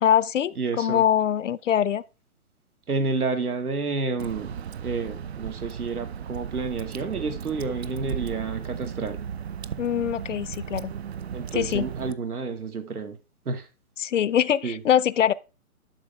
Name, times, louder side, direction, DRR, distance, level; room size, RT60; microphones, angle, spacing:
voice 1, 0.0-2.0 9.8-10.9 11.5-11.9 14.0-15.3, left 9 dB, 60° left, 0.5 m, -23 dB
voice 2, 0.6-1.0 2.9-4.6 4.8-9.2 11.3-13.2 13.5-13.7 14.6-14.8, right 4 dB, 90° right, 2.1 m, -30 dB
Water / Drip, 4.2-12.1, right 8 dB, 50° right, 0.5 m, -35 dB
11.5 x 6.4 x 3.3 m
hypercardioid pair, 155°, 43 cm